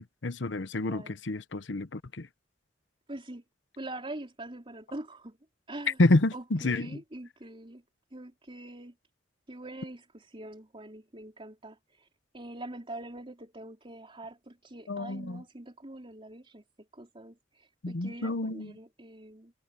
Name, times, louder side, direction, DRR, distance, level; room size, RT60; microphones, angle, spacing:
voice 1, 0.0-2.3 6.0-7.0 14.9-15.4 17.8-18.7, left 2 dB, 70° left, 0.9 m, -28 dB
voice 2, 0.8-1.2 3.1-3.4 3.8-5.4 5.7-6.0 6.3-7.8 8.1-8.9 9.5-12.1 12.3-16.6 16.9-19.5, right 1 dB, 30° right, 4.2 m, -44 dB
head